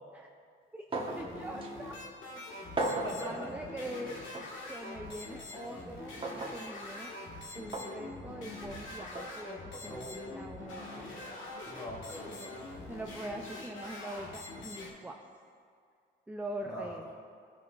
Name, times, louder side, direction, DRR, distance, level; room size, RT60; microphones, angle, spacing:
sound 1, 0.9-14.9, left 2 dB, 80° left, 1.8 m, -44 dB
sound 2, 0.9-1.3 1.6-1.7 2.8-3.2 4.3-4.5 6.2-6.6 7.7-7.9 9.1-9.3, right 2 dB, 25° right, 1.2 m, -34 dB
voice 1, 1.2-2.0 3.2-4.2 4.7-7.1 7.5-11.1 12.3-12.6 12.9-15.2 16.3-17.1, right 1 dB, 10° right, 1 dB, 0.5 m, -43 dB
voice 2, 2.8-3.5 9.7-10.2 11.6-12.6 16.6-17.0, equal, 20° left, -4 dB, 2.2 m, -43 dB
sound 3, 8.6-9.3 9.9-10.8, right 3 dB, 60° right, 1.0 m, -54 dB
15.0 x 5.7 x 2.5 m, 2.2 s
cardioid pair, 90°, 20 cm